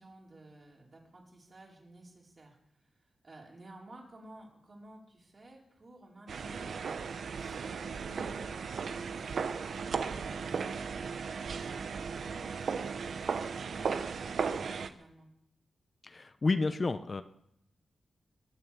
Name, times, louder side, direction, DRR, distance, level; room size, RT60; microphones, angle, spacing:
voice 1, 0.0-6.8 7.1-11.0 11.5-13.3 13.6-15.3, right 1 dB, 40° right, -2 dB, 4.5 m, -54 dB
sound 1, 6.3-14.9, right 5 dB, 70° right, 0.9 m, -36 dB
voice 2, 16.0-17.2, left 3 dB, 35° left, 10 dB, 0.7 m, -30 dB
21.5 x 7.5 x 7.0 m, 0.76 s
wide cardioid pair, 100°, 0 cm